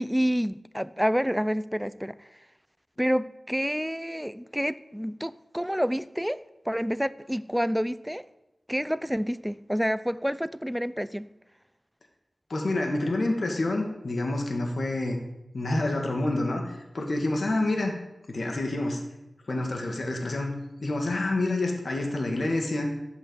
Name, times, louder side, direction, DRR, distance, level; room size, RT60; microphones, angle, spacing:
voice 1, 0.0-2.3 3.0-8.2 8.7-11.3, equal, ahead, 16 dB, 0.6 m, -28 dB
voice 2, 12.5-15.2 15.5-17.9 18.3-19.0 19.5-22.9, left 2 dB, 65° left, 2 dB, 2.2 m, -28 dB
12.0 x 8.1 x 8.3 m, 0.97 s
cardioid pair, 50°, 0 cm